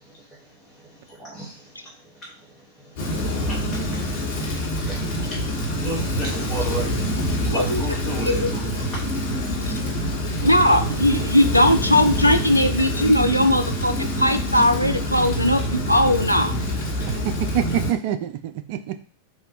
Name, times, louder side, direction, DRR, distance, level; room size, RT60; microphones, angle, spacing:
voice 1, 0.0-5.4 5.8-9.0 9.7-9.9, right 1 dB, 15° left, -6 dB, 1.1 m, -35 dB
Rain, 3.0-17.9, equal, 55° left, 1.4 m, -26 dB
voice 2, 10.4-16.5, left 1 dB, 85° left, 7 dB, 0.3 m, -19 dB
voice 3, 17.1-19.0, right 10 dB, 45° right, 9 dB, 0.3 m, -26 dB
3.3 x 2.5 x 4.2 m, 0.41 s
figure-of-eight pair, 90°, 0 cm